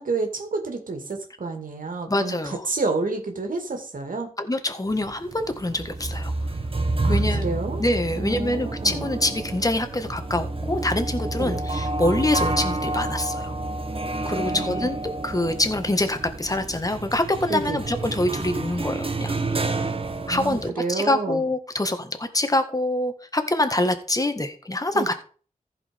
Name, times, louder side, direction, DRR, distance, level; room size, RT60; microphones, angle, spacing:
voice 1, 0.0-4.3 7.0-7.8 8.1-9.1 11.4-11.6 14.4-15.0 17.5-17.8 20.3-21.4 24.9-25.1, right 3 dB, 75° right, 4 dB, 2.4 m, -29 dB
voice 2, 2.1-2.6 4.4-6.3 7.1-7.5 7.8-13.5 14.2-15.0 15.2-19.8 20.3-25.1, left 1 dB, 25° left, 7 dB, 1.7 m, -25 dB
sound 1, 4.9-20.7, right 2 dB, 40° right, 1.2 m, -29 dB
14.5 x 5.0 x 5.3 m, 0.41 s
wide cardioid pair, 65°, 14 cm